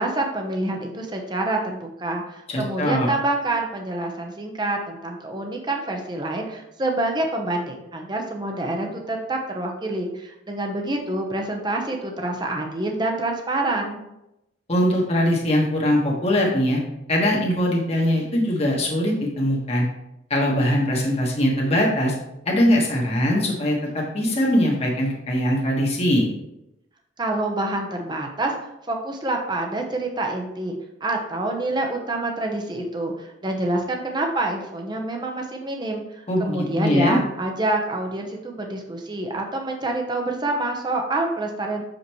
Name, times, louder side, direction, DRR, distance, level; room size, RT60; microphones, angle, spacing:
voice 1, 0.0-14.0 27.2-28.5 28.9-36.0 36.4-41.8, right 2 dB, 25° right, 2 dB, 0.9 m, -27 dB
voice 2, 2.5-3.1 14.7-16.8 17.1-19.9 20.3-22.1 22.4-26.3 36.3-37.2, equal, 35° left, -3 dB, 1.5 m, -21 dB
6.8 x 5.2 x 3.1 m, 0.87 s
head